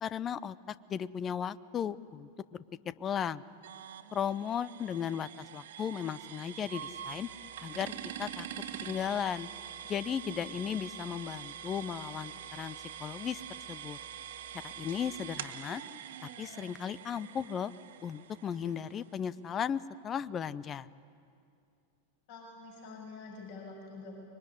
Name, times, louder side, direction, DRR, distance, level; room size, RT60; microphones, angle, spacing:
voice 1, 0.0-2.6 3.0-3.4 4.1-7.3 7.6-7.9 8.2-8.5 8.8-9.5 9.9-13.4 13.7-14.0 14.6-15.8 16.4-17.7 18.0-20.9, left 8 dB, 25° left, 18 dB, 0.7 m, -36 dB
sound 1, 3.6-19.3, right 9 dB, 60° right, 1.6 m, -45 dB
voice 2, 22.3-24.2, left 3 dB, 50° left, 0 dB, 7.1 m, -46 dB
25.0 x 23.5 x 9.9 m, 2.4 s
figure-of-eight pair, 90°, 0 cm